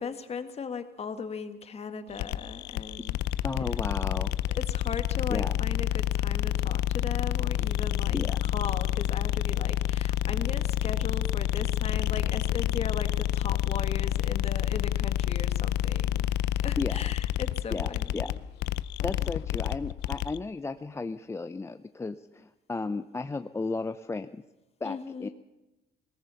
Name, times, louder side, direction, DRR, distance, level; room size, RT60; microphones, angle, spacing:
voice 1, 0.0-3.2 4.5-16.3 16.6-18.4 19.0-19.4 24.8-25.3, left 6 dB, 40° left, 8 dB, 1.9 m, -38 dB
sound 1, 2.1-20.4, left 12 dB, 85° left, 0.6 m, -28 dB
voice 2, 3.4-4.3 5.3-5.5 8.1-8.4 16.8-17.0 17.7-18.3 19.0-24.4 24.8-25.3, left 3 dB, 15° left, 10 dB, 0.6 m, -34 dB
20.5 x 19.0 x 7.1 m, 1.0 s
cardioid pair, 110°, 17 cm